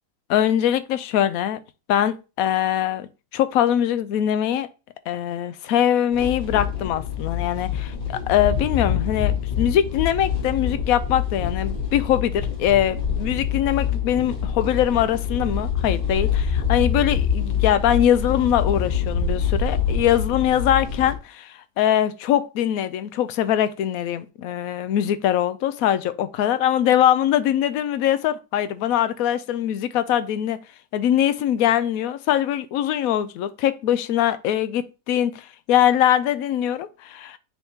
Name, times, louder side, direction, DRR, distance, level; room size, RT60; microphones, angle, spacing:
voice 1, 0.3-1.6 1.9-4.7 5.1-30.6 30.9-37.4, left 10 dB, 70° left, 1.0 m, -22 dB
sound 1, 6.1-21.1, left 7 dB, 35° left, 1.3 m, -25 dB
10.0 x 3.5 x 2.8 m
omnidirectional pair, 1.7 m